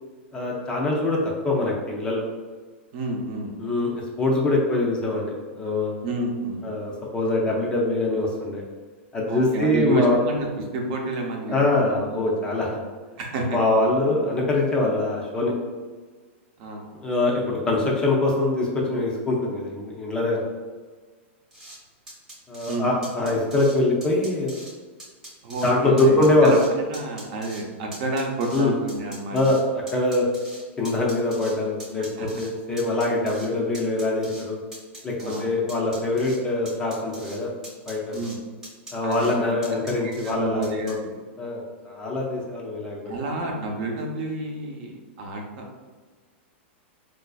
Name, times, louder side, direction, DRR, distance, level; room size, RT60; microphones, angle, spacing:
voice 1, 0.3-2.2 3.6-6.0 6.6-8.6 9.1-10.2 11.5-12.8 13.5-15.5 17.0-20.4 22.5-24.5 25.6-26.6 28.5-28.7 29.3-30.3 30.8-34.6 35.0-35.1 35.4-37.5 37.9-38.2 38.9-41.0 41.4-43.2, left 2 dB, 15° left, -3 dB, 0.5 m, -23 dB
voice 2, 2.9-3.5 6.0-6.7 9.3-12.2 13.2-13.6 16.6-16.9 22.7-22.9 25.4-26.6 26.9-29.4 32.0-32.3 35.2-35.5 38.1-38.4 39.0-39.6 40.0-41.1 43.1-45.9, right 2 dB, 45° right, 0 dB, 0.6 m, -30 dB
sound 1, 21.5-21.8 22.1-22.8 23.0-23.8 24.0-24.7 25.0-25.7 26.0-26.7 26.9-27.6 27.9-29.6 29.9-31.5 31.8-32.5 32.8-33.5 33.7-34.4 34.7-35.4 35.7-36.4 36.7-37.4 37.6-38.4 38.6-39.3 39.6-40.3 40.6-40.9, right 1 dB, 10° right, 0.8 m, -42 dB
4.0 x 2.5 x 2.3 m, 1.4 s
supercardioid pair, 155°, 7 cm